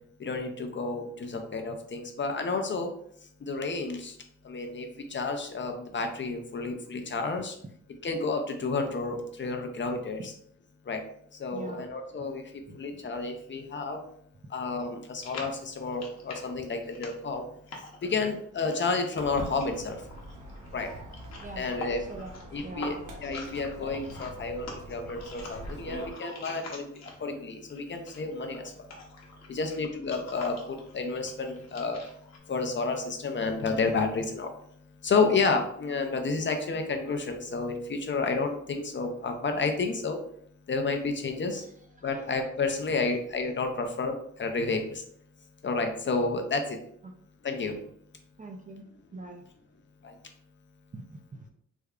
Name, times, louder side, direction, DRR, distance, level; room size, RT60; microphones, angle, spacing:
voice 1, 0.2-2.9 3.4-4.1 4.4-7.5 8.0-10.3 10.9-11.0 11.4-12.4 12.7-14.0 14.5-17.4 18.0-20.0 20.7-20.9 21.6-22.1 22.5-26.9 27.2-28.7 29.5-32.0 32.5-34.5 35.0-40.2 40.7-41.6 42.0-45.0 45.6-46.8 47.4-47.7 50.0-50.1, left 4 dB, 40° left, 5 dB, 0.5 m, -30 dB
voice 2, 11.5-11.9 12.7-12.8 21.4-21.7 22.1-23.1 42.0-42.2 47.0-47.1 48.4-48.9 49.1-49.4 50.9-51.5, right 2 dB, 25° right, 3 dB, 0.4 m, -43 dB
sound 1, 15.2-27.4 27.7-32.4, left 3 dB, 55° left, 0.9 m, -45 dB
Walk footsteps, 19.2-26.1, right 1 dB, 75° right, 1.0 m, -44 dB
3.4 x 2.2 x 3.5 m, 0.67 s
wide cardioid pair, 125°, 31 cm